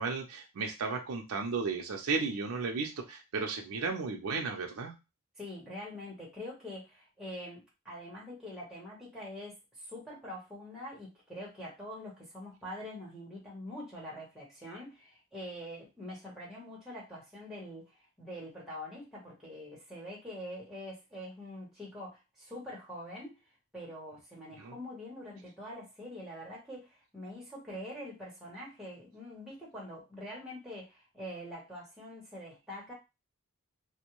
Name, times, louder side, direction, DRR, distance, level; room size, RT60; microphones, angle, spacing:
voice 1, 0.0-4.9 24.6-24.8, right 4 dB, 75° right, 3 dB, 0.5 m, -34 dB
voice 2, 5.4-17.9 18.2-23.4 23.7-32.9, left 1 dB, ahead, -5 dB, 1.0 m, -44 dB
2.5 x 2.1 x 2.9 m, 0.25 s
head